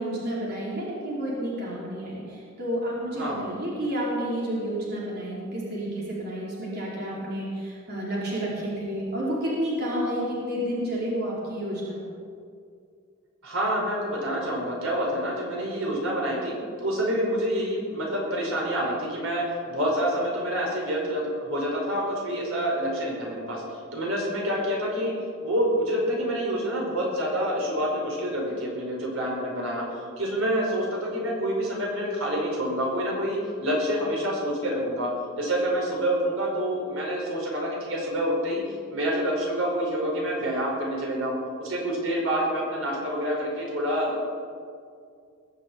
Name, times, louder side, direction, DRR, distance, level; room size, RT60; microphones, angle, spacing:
voice 1, 0.0-12.0, equal, 50° right, -6 dB, 4.6 m, -30 dB
voice 2, 13.4-25.1 25.4-35.1 35.4-38.6 38.9-44.3, equal, 80° right, -2 dB, 5.0 m, -27 dB
20.5 x 8.1 x 8.7 m, 2.3 s
head